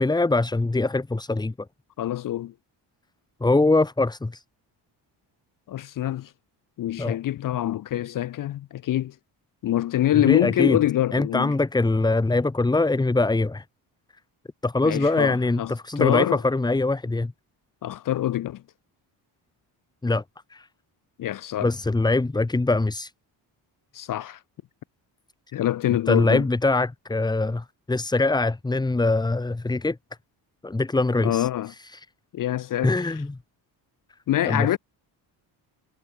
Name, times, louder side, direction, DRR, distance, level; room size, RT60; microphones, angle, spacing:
voice 1, 0.0-1.5 3.4-4.4 7.0-7.2 10.1-10.8 11.1-13.6 14.6-17.3 20.0-20.2 20.5-20.7 21.6-23.1 26.1-30.0 30.6-32.1 32.8-33.4 34.4-34.8, left 2 dB, 10° left, 0.9 m, -23 dB
voice 2, 2.0-2.5 5.7-6.3 6.8-9.1 9.6-11.5 14.8-16.4 17.8-18.6 21.2-21.7 23.9-24.4 25.5-26.4 31.2-31.7 32.3-33.1 34.3-34.8, left 13 dB, 50° left, 0.5 m, -25 dB
cardioid pair, 120°, 44 cm